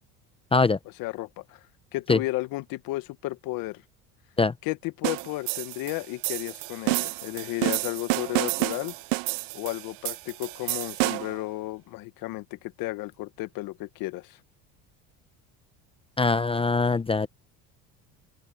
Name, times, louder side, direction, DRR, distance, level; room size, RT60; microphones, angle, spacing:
voice 1, 1.0-1.6 1.9-3.8 4.6-8.9 9.5-14.4, left 19 dB, 65° left, 1.2 m, -33 dB
sound 1, 5.0-11.4, right 27 dB, 80° right, 0.6 m, -30 dB
voice 2, 16.2-17.3, left 4 dB, 15° left, 0.7 m, -22 dB
open air
supercardioid pair, 100°, 38 cm